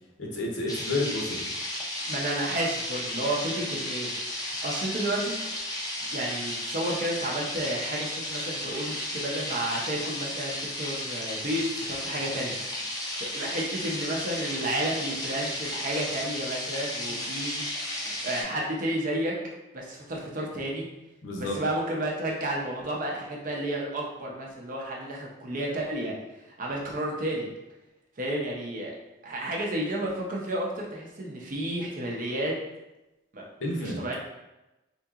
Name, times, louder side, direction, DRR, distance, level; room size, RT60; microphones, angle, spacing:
voice 1, 0.2-1.5 17.1-17.2 21.2-21.6 33.6-34.0, left 2 dB, 70° left, -2 dB, 0.7 m, -30 dB
sound 1, 0.7-18.4, left 1 dB, 20° left, 0.5 m, -34 dB
voice 2, 2.1-4.1 4.4-5.4 6.1-12.5 13.3-17.6 18.2-19.3 19.7-20.9 21.4-26.1 26.6-27.5 28.2-28.9 29.2-32.5 33.3-33.5 33.8-34.1, right 1 dB, 45° right, -2 dB, 0.6 m, -31 dB
3.6 x 2.8 x 2.4 m, 0.98 s
head